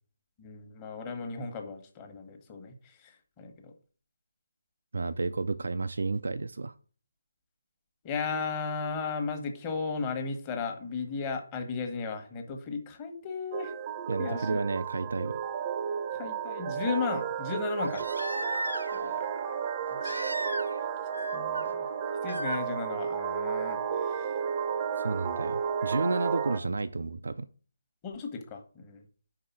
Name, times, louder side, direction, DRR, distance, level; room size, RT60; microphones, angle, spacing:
voice 1, 0.4-3.7 8.0-13.7 14.2-14.6 16.1-18.0 18.9-19.3 19.9-20.3 20.8-20.9 21.3-21.9 22.2-24.4 28.0-29.0, left 5 dB, 20° left, 1.2 m, -35 dB
voice 2, 4.9-6.7 14.1-15.4 25.0-27.5, right 3 dB, 65° right, 0.3 m, -31 dB
sound 1, 13.5-26.6, right 7 dB, 25° right, 0.6 m, -33 dB
Crying sobbing, 15.0-15.1 17.8-19.1 20.0-20.9 21.1-21.6 22.3-22.6 24.2-24.3, right 1 dB, 90° right, 0.9 m, -35 dB
5.3 x 4.8 x 5.9 m
figure-of-eight pair, 145°, 0 cm